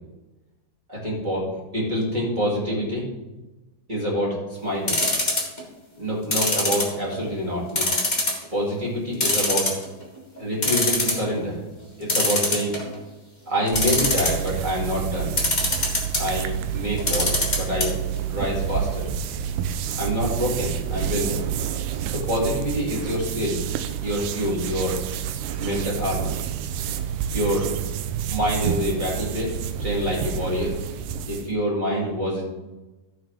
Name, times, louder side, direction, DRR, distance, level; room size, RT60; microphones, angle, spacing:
voice 1, 0.9-3.0 3.9-5.0 5.9-8.0 8.5-9.7 10.4-11.6 12.0-12.8 13.5-15.4 16.1-18.0 18.3-19.1 20.0-21.4 22.0-23.6 24.0-25.0 25.5-26.4 27.3-27.7 28.3-29.5 29.8-30.8 31.3-32.5, equal, 15° right, -5 dB, 2.7 m, -26 dB
sound 1, 4.9-5.6 6.3-7.3 7.7-8.4 8.8-8.9 9.2-10.0 10.4-10.5 10.6-11.2 12.1-13.0 13.7-14.5 15.4-16.2 17.0-17.9 18.2-18.3 18.5-18.6, left 2 dB, 20° left, 1.3 m, -22 dB
sound 2, 13.7-31.5, right 9 dB, 80° right, 2.2 m, -29 dB
14.5 x 6.5 x 3.6 m, 1.1 s
omnidirectional pair, 3.9 m